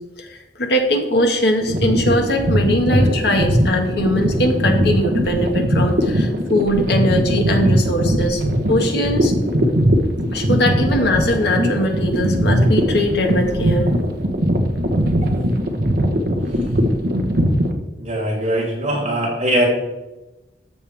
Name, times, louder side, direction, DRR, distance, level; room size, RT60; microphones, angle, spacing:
voice 1, 0.2-8.4 8.7-9.3 10.3-13.9, left 1 dB, 65° left, 2 dB, 1.7 m, -20 dB
sound 1, 1.6-17.7, equal, 60° right, 1.2 m, -19 dB
voice 2, 18.0-19.7, right 1 dB, 40° right, -5 dB, 3.7 m, -21 dB
13.0 x 7.1 x 3.5 m, 1.0 s
head